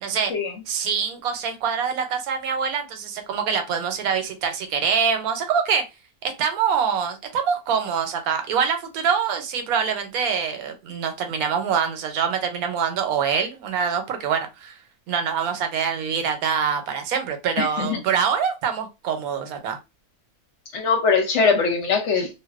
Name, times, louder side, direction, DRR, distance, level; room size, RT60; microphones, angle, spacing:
voice 1, 0.0-0.3 0.7-5.8 6.2-14.7 15.1-19.8, right 7 dB, 90° right, 1.1 m, -25 dB
voice 2, 17.6-18.0 20.7-22.3, left 5 dB, 65° left, 0.8 m, -21 dB
2.5 x 2.1 x 2.3 m
omnidirectional pair, 1.5 m